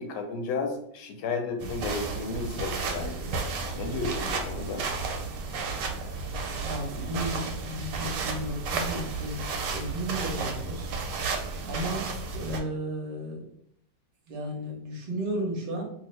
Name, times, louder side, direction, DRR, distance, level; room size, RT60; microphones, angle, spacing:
voice 1, 0.0-3.4 3.8-4.9, left 4 dB, 80° left, 4 dB, 1.2 m, -33 dB
sound 1, 1.6-12.6, right 4 dB, 90° right, 1.2 m, -33 dB
voice 2, 6.6-10.9 11.7-12.1 12.3-13.5 14.3-15.8, right 1 dB, 50° right, -1 dB, 0.7 m, -34 dB
2.7 x 2.5 x 3.1 m, 0.71 s
omnidirectional pair, 1.9 m